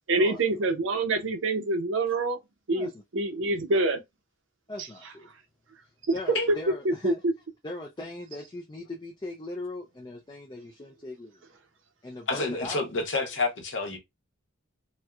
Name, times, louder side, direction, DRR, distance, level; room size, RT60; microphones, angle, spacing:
voice 1, 0.1-2.4 2.7-4.0 6.5-6.6 6.8-7.3, right 2 dB, 65° right, 0.6 m, -26 dB
voice 2, 4.7-5.3 6.1-7.2 7.6-11.4 12.0-12.8, left 2 dB, 20° left, 0.4 m, -39 dB
voice 3, 12.3-14.0, left 3 dB, 60° left, 0.9 m, -28 dB
4.2 x 2.2 x 2.3 m
head